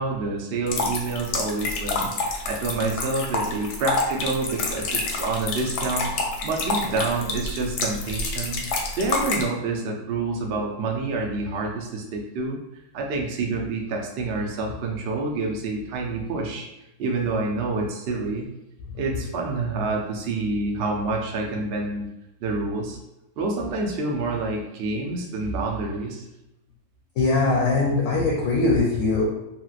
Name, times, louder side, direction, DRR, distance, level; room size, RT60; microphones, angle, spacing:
voice 1, 0.0-6.1 6.4-8.6 8.9-12.6 12.9-16.7 17.0-18.5 18.9-22.1 22.4-23.0 23.4-26.3, right 3 dB, 65° right, 0 dB, 0.6 m, -27 dB
sound 1, 0.7-9.4, left 3 dB, 85° left, 1.1 m, -28 dB
voice 2, 27.2-29.2, left 3 dB, 70° left, -2 dB, 0.9 m, -21 dB
2.9 x 2.8 x 2.4 m, 0.92 s
omnidirectional pair, 1.6 m